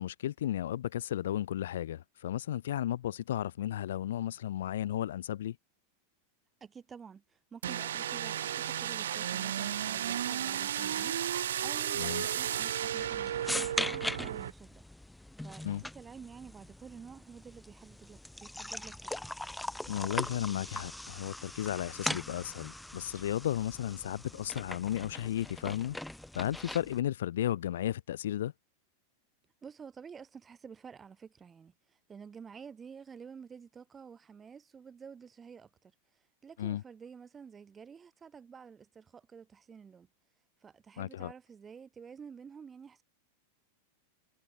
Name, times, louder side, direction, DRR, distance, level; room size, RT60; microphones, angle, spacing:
voice 1, 0.0-5.6 12.0-12.2 15.6-15.8 19.9-26.0 26.3-28.5 36.6-36.8 41.0-41.3, left 12 dB, 60° left, 1.0 m, -34 dB
voice 2, 6.6-14.9 15.4-19.1 29.6-35.9 36.4-40.1 40.6-43.0, right 6 dB, 20° right, 7.6 m, -50 dB
sound 1, 7.6-14.5, right 10 dB, 60° right, 2.3 m, -33 dB
sound 2, 13.0-27.0, left 1 dB, 5° left, 1.7 m, -40 dB
figure-of-eight pair, 90°, 0 cm